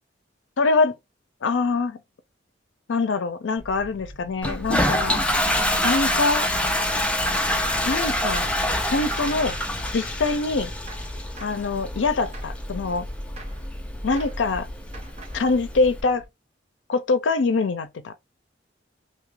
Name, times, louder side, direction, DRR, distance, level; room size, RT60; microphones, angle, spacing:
voice 1, 0.6-1.0 1.4-2.0 2.9-5.2 5.8-6.5 7.9-8.5 8.9-9.6 9.9-10.7 11.4-13.1 14.0-14.7 15.3-16.2 16.9-18.1, left 3 dB, 75° left, 0.5 m, -24 dB
sound 1, 3.6-16.3, equal, 85° right, 1.6 m, -46 dB
Toilet flush, 4.4-16.0, left 1 dB, 5° left, 0.4 m, -26 dB
Gunshot gunfire, 9.3-9.6 10.3-10.6 10.9-11.7 12.3-12.6 13.4-13.7 14.2-14.5 14.9-15.5, right 3 dB, 35° right, 0.6 m, -45 dB
2.7 x 2.4 x 3.2 m
head